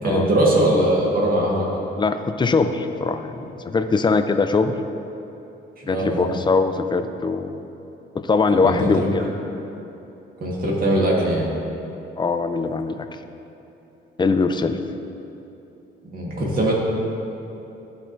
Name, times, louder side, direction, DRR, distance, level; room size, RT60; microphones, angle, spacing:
voice 1, 0.0-1.7 5.8-6.4 8.6-9.1 10.4-11.5 16.1-16.7, right 1 dB, 45° right, -4 dB, 1.6 m, -20 dB
voice 2, 2.0-4.8 5.9-7.6 8.1-9.2 12.2-13.1 14.2-14.8, left 4 dB, 25° left, 8 dB, 0.4 m, -21 dB
12.5 x 4.4 x 2.6 m, 3.0 s
cardioid pair, 90°, 20 cm